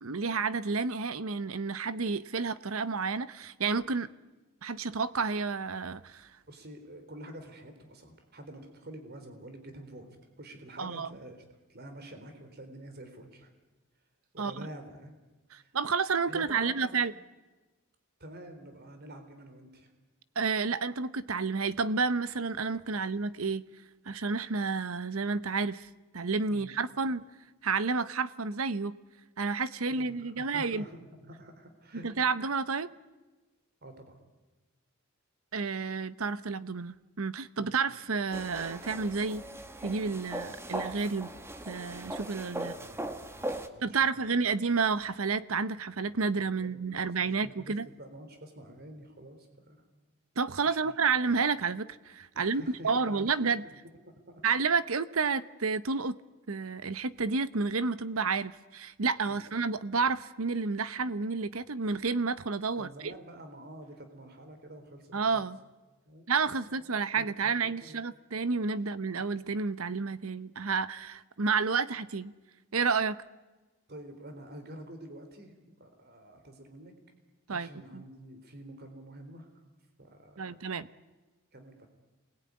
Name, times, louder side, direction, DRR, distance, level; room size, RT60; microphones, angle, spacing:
voice 1, 0.0-4.1 4.6-6.3 10.8-11.1 14.4-14.7 15.5-17.1 20.4-23.6 24.1-27.2 27.6-29.0 29.4-30.8 32.0-32.9 35.5-39.4 39.8-41.3 41.7-42.7 43.8-47.9 50.4-53.6 54.4-56.1 56.5-63.1 65.1-65.6 66.3-72.3 72.7-73.2 77.5-78.0 80.4-80.9, right 4 dB, 80° right, 0.9 m, -30 dB
voice 2, 6.5-11.4 11.7-13.5 14.3-15.1 15.5-15.8 16.3-17.0 18.2-19.9 22.9-23.1 26.5-26.8 29.9-32.3 33.8-34.2 37.6-37.9 42.5-43.9 44.1-44.3 46.4-49.8 50.6-50.9 52.3-54.4 59.3-59.5 62.8-65.4 66.1-66.5 67.2-68.0 73.9-76.9 77.5-79.6 80.0-80.6 81.5-81.9, right 1 dB, 50° right, 3.9 m, -48 dB
sound 1, 38.3-43.7, right 1 dB, 10° right, 1.6 m, -39 dB
27.5 x 21.0 x 9.7 m
head